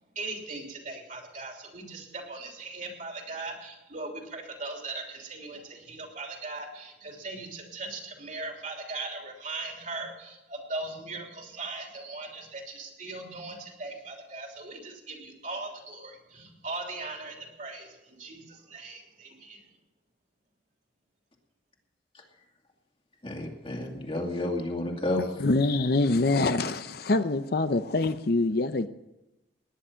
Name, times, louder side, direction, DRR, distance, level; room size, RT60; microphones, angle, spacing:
voice 1, 0.0-19.8, right 3 dB, 45° right, 2 dB, 3.1 m, -39 dB
voice 2, 23.2-25.5, left 1 dB, 30° left, 1 dB, 2.3 m, -31 dB
voice 3, 25.4-28.9, left 2 dB, 60° left, 11 dB, 0.7 m, -25 dB
18.5 x 10.0 x 5.7 m, 0.96 s
head